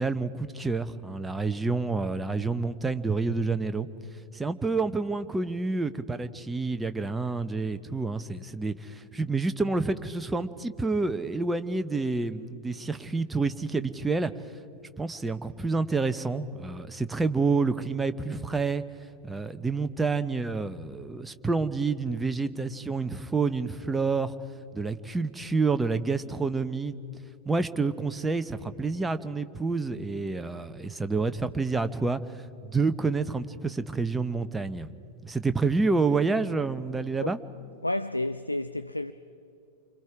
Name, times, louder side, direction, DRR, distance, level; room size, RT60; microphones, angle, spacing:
voice 1, 0.0-3.9 4.3-14.3 15.0-18.8 19.2-24.3 24.7-27.0 27.5-34.9 35.2-37.4, right 4 dB, 10° right, 0.9 m, -28 dB
voice 2, 37.8-39.1, left 1 dB, 85° left, 0.5 m, -30 dB
29.0 x 25.5 x 4.8 m
figure-of-eight pair, 90°, 0 cm